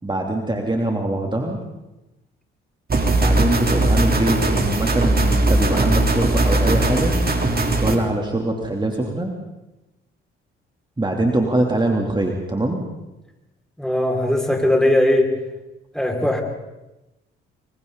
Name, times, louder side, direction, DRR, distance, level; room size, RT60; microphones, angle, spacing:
voice 1, 0.0-1.6 3.1-7.2 7.6-9.3 11.0-12.8, right 1 dB, 15° right, 1 dB, 3.3 m, -23 dB
sound 1, 2.9-8.0, right 2 dB, 30° right, 3.7 m, -19 dB
voice 2, 13.8-15.3 15.9-16.4, left 1 dB, ahead, 1 dB, 5.7 m, -19 dB
29.5 x 23.0 x 4.1 m, 1.0 s
hypercardioid pair, 55°, 29 cm